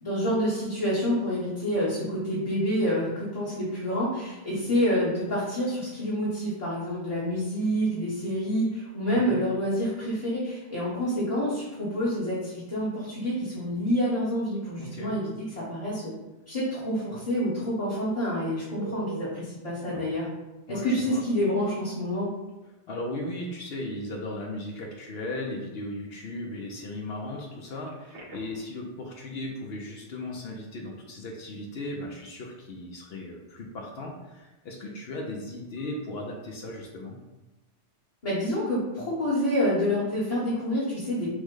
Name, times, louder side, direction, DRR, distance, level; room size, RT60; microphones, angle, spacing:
voice 1, 0.0-16.1 16.5-20.3 20.7-22.3 38.2-41.4, equal, 35° left, -9 dB, 1.1 m, -28 dB
voice 2, 9.1-9.4 14.8-15.2 20.7-21.2 22.9-37.2, left 1 dB, 65° left, 1 dB, 0.8 m, -37 dB
Telephone, 18.7-19.4 19.9-20.0 21.8-21.9 22.3-22.5 27.8-28.7 35.8-36.0, right 2 dB, 70° right, 1.0 m, -41 dB
6.0 x 2.1 x 3.7 m, 1.0 s
omnidirectional pair, 1.2 m